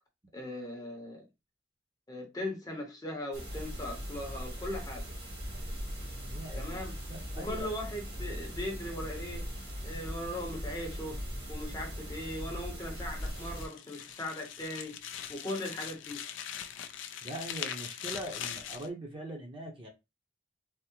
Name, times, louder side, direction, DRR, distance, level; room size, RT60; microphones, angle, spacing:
voice 1, 0.3-1.3 2.1-5.1 6.6-7.0 7.4-9.4 9.8-11.2 11.5-15.0 15.3-16.3, left 1 dB, 20° left, 0.7 m, -39 dB
sound 1, 3.3-13.7, equal, 55° right, 1.4 m, -39 dB
voice 2, 6.3-6.8 7.1-7.7 17.2-19.9, right 1 dB, 25° right, 0.7 m, -41 dB
sound 2, 13.0-18.9, left 9 dB, 70° left, 0.4 m, -41 dB
3.5 x 2.0 x 2.9 m
head